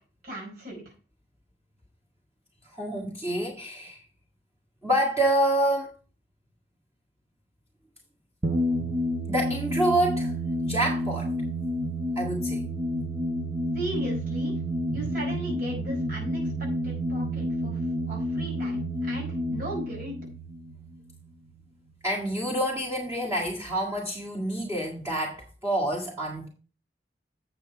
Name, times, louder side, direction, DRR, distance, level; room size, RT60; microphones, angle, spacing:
voice 1, 0.2-0.8 13.7-14.6 14.9-16.5 16.8-17.8 18.1-20.1, right 1 dB, 50° right, 5.1 m, -37 dB
voice 2, 2.7-4.0 4.8-5.9 9.3-10.3 10.6-11.3 12.2-12.6 22.0-26.5, right 1 dB, 15° right, 1.9 m, -27 dB
sound 1, 8.4-21.6, equal, 35° right, 1.0 m, -30 dB
8.9 x 6.9 x 4.6 m
head